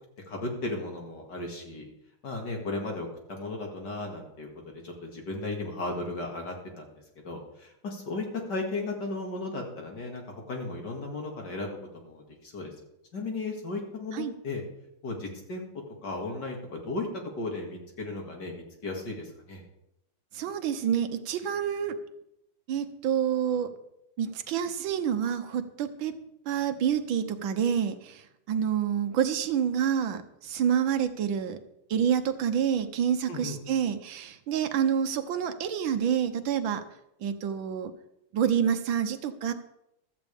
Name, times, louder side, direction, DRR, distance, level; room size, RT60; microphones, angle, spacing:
voice 1, 0.3-1.8 2.2-6.9 7.2-11.8 12.0-12.7 13.1-14.6 15.0-15.7 16.0-17.1 17.4-19.6 33.3-33.6, left 2 dB, 55° left, 1 dB, 2.8 m, -35 dB
voice 2, 20.3-21.9 22.7-23.7 24.2-26.1 26.5-31.6 31.9-36.8 37.2-37.9 38.3-39.5, right 8 dB, 75° right, 9 dB, 1.6 m, -28 dB
15.5 x 13.0 x 3.5 m, 0.82 s
omnidirectional pair, 2.3 m